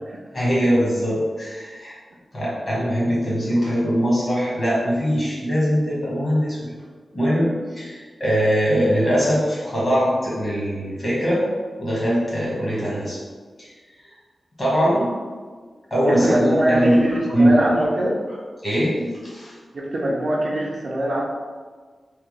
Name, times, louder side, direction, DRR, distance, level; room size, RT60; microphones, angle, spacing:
voice 1, 0.3-1.9 2.3-6.7 7.1-11.4 11.8-13.2 13.6-13.7 14.0-14.1 14.6-15.1 15.9-17.0 17.3-17.6 18.6-19.6, equal, 35° left, -7 dB, 1.2 m, -21 dB
voice 2, 16.1-18.2 19.7-21.2, right 1 dB, 45° right, -3 dB, 0.4 m, -22 dB
3.3 x 2.2 x 3.1 m, 1.5 s
wide cardioid pair, 165°, 0 cm